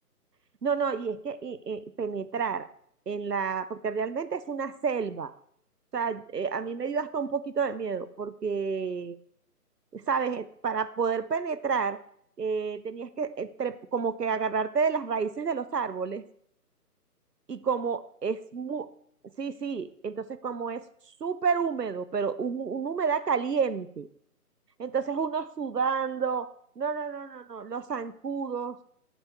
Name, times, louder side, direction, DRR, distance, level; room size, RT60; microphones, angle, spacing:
voice 1, 0.6-2.7 3.1-5.3 5.9-9.2 9.9-12.0 12.4-16.2 17.5-18.9 19.4-20.8 21.2-24.1 24.8-26.5 26.8-28.8, right 5 dB, 80° right, 15 dB, 1.0 m, -30 dB
12.5 x 8.9 x 4.6 m, 0.67 s
figure-of-eight pair, 145°, 47 cm